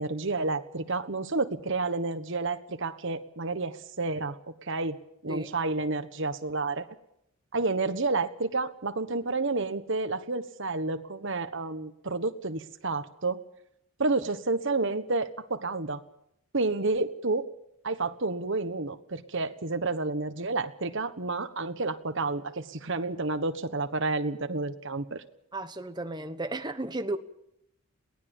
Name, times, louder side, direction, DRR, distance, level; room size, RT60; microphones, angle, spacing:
voice 1, 0.0-5.0 5.2-6.9 7.5-13.4 14.0-16.0 16.5-17.5 17.8-25.2, right 3 dB, 55° right, 10 dB, 1.3 m, -30 dB
voice 2, 25.5-27.2, right 2 dB, 20° right, 8 dB, 1.2 m, -34 dB
22.0 x 18.5 x 7.2 m, 0.80 s
head